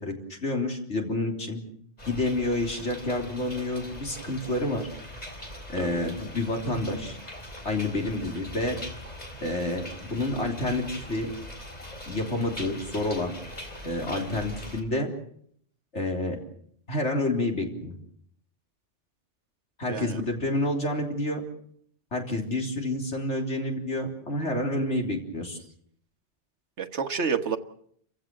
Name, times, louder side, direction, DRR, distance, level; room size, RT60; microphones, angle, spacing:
voice 1, 0.0-1.6 2.0-4.9 5.7-7.2 7.6-8.8 9.4-11.3 12.1-13.4 13.8-15.1 15.9-16.4 16.9-18.0 19.8-21.4 22.1-25.6, left 2 dB, 80° left, 2 dB, 3.9 m, -29 dB
sound 1, 2.0-14.8, left 1 dB, 35° left, 3.8 m, -41 dB
voice 2, 19.9-20.2 26.8-27.6, right 6 dB, 75° right, 7 dB, 1.7 m, -29 dB
29.5 x 15.5 x 7.7 m, 0.67 s
omnidirectional pair, 1.2 m